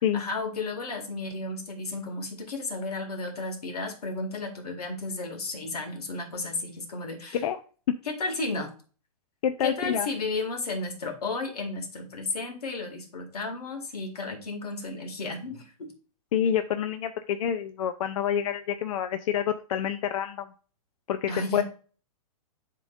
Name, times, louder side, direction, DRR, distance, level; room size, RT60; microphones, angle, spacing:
voice 1, 0.1-7.4 8.1-8.7 9.6-15.9 21.3-21.6, left 3 dB, 90° left, 4 dB, 2.2 m, -33 dB
voice 2, 9.4-10.1 16.3-20.5 21.1-21.6, left 9 dB, 65° left, 9 dB, 0.5 m, -27 dB
11.0 x 3.8 x 2.5 m, 0.39 s
hypercardioid pair, 140°, 19 cm